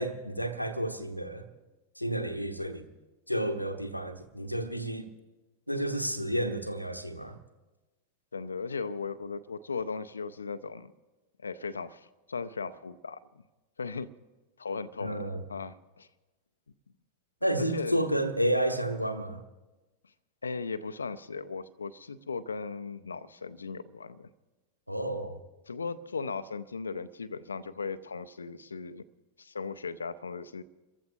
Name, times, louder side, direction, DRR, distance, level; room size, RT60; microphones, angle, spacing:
voice 1, 0.0-1.5 2.0-2.9 3.3-5.1 5.7-7.4 15.0-15.4 17.4-19.4 24.9-25.4, right 1 dB, 90° left, 1.0 m, -31 dB
voice 2, 8.3-10.9 11.4-13.2 13.8-14.1 14.6-16.1 17.6-18.2 20.4-24.3 25.7-29.0 29.4-30.6, left 4 dB, 75° left, 0.6 m, -37 dB
30.0 x 14.5 x 2.7 m
figure-of-eight pair, 90°, 0 cm